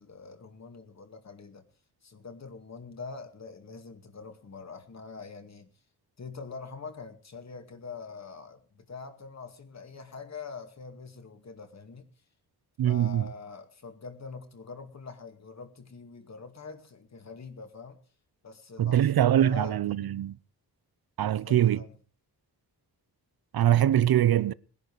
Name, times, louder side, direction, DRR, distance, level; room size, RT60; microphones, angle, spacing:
voice 1, 0.0-1.6 2.0-5.7 6.2-12.1 12.8-18.0 18.4-20.2 21.3-22.0, left 5 dB, 40° left, 2.2 m, -44 dB
voice 2, 12.8-13.3 18.8-20.4 21.2-21.8 23.5-24.5, right 11 dB, 65° right, 0.7 m, -23 dB
20.5 x 11.0 x 4.7 m
wide cardioid pair, 150°, 39 cm